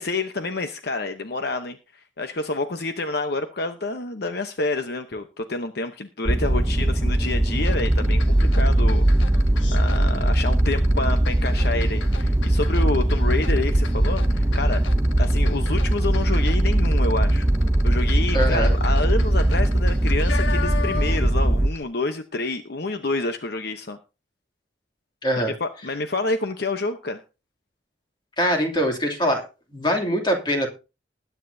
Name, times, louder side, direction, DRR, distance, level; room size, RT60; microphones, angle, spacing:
voice 1, 0.0-9.1 9.4-9.5 9.7-14.8 15.2-17.5 17.8-24.0 25.4-27.2, left 3 dB, 55° left, 8 dB, 0.9 m, -28 dB
sound 1, 6.3-21.7, right 1 dB, 15° right, 0.5 m, -20 dB
sound 2, 7.6-21.4 21.7-21.8, left 6 dB, 85° left, 1.3 m, -37 dB
voice 2, 18.3-18.7 25.2-25.5 28.4-29.5 29.7-30.7, equal, 25° left, 2 dB, 2.6 m, -23 dB
20.0 x 9.2 x 2.7 m, 0.30 s
head